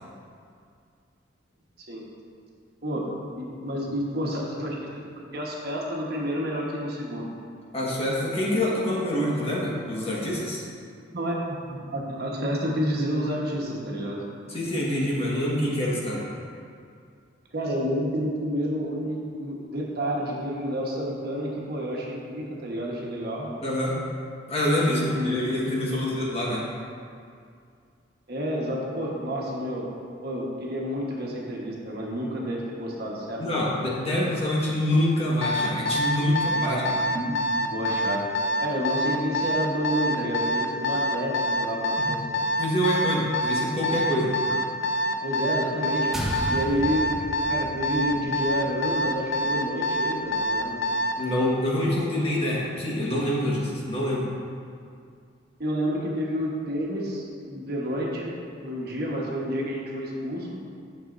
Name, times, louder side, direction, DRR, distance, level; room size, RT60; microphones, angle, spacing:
voice 1, 2.8-7.3 11.1-14.2 17.5-23.5 24.9-26.1 28.3-29.9 30.2-33.7 36.6-36.8 37.1-38.2 38.6-42.3 44.5-44.6 45.2-46.1 46.5-47.1 47.5-50.8 55.6-58.3 58.6-60.6, equal, 55° right, -3 dB, 1.3 m, -30 dB
voice 2, 7.7-10.6 14.5-16.2 23.6-24.0 24.5-26.6 33.4-36.8 42.0-42.1 42.6-44.3 51.2-54.3, left 1 dB, 35° left, -5 dB, 1.4 m, -26 dB
Alarm, 35.4-51.2, equal, 65° left, 0.6 m, -26 dB
sound 1, 46.1-50.7, equal, ahead, 0.8 m, -36 dB
10.5 x 6.6 x 2.6 m, 2.3 s
head